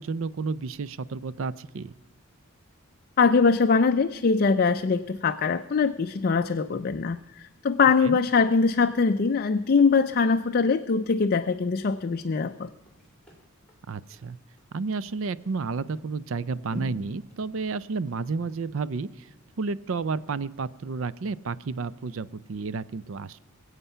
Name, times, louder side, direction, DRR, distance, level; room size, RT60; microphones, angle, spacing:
voice 1, 0.0-1.9 8.0-8.2 13.9-14.4 14.7-19.3 19.6-23.5, right 4 dB, 60° right, 18 dB, 0.5 m, -31 dB
voice 2, 3.2-12.7, left 4 dB, 40° left, 8 dB, 0.4 m, -22 dB
sound 1, 12.4-20.9 21.3-21.4, right 1 dB, 5° left, 3.0 m, -48 dB
22.5 x 8.1 x 5.5 m, 1.1 s
head